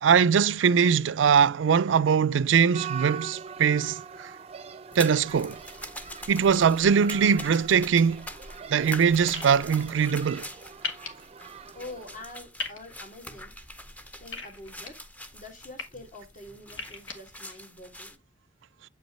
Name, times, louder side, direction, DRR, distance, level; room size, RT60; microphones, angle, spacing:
voice 1, 0.0-4.3 5.0-5.6 6.3-8.2 8.7-10.4, right 7 dB, 90° right, 0.4 m, -22 dB
sound 1, 2.7-12.2, right 7 dB, 35° right, 0.5 m, -42 dB
sound 2, 4.9-18.2, left 1 dB, 10° left, 0.7 m, -44 dB
sound 3, 9.3-9.5 10.8-11.1 12.6-12.8 14.3-14.9 15.5-15.8 16.7-17.1, left 5 dB, 90° left, 1.7 m, -34 dB
voice 2, 11.7-13.9 14.2-15.0 15.3-18.2, left 2 dB, 45° left, 2.1 m, -45 dB
8.0 x 5.2 x 3.1 m
head